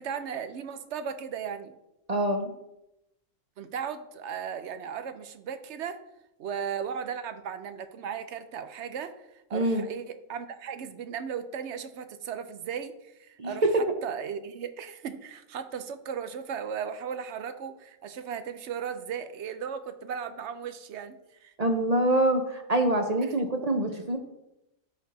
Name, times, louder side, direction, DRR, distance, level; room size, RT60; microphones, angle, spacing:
voice 1, 0.0-1.7 3.6-6.1 6.4-21.5 23.2-23.5, right 7 dB, 65° right, 10 dB, 0.9 m, -36 dB
voice 2, 2.1-2.5 9.5-9.9 13.4-13.5 21.6-24.2, right 1 dB, 40° right, 5 dB, 0.6 m, -25 dB
13.0 x 4.3 x 4.0 m, 0.89 s
omnidirectional pair, 1.4 m